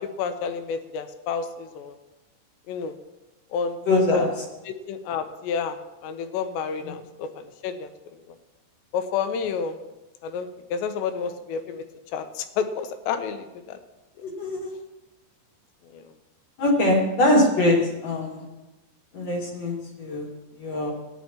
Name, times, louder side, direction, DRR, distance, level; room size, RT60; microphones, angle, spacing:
voice 1, 0.0-2.0 2.7-3.0 3.5-4.3 4.7-8.4 8.9-9.8 10.2-11.8 12.1-13.8 15.8-16.1, left 6 dB, 80° left, 8 dB, 2.9 m, -30 dB
voice 2, 3.9-4.3 14.2-14.7 16.6-18.5 19.1-20.3 20.6-20.9, left 1 dB, 45° left, -2 dB, 2.5 m, -22 dB
18.5 x 10.5 x 3.0 m, 1.0 s
omnidirectional pair, 5.4 m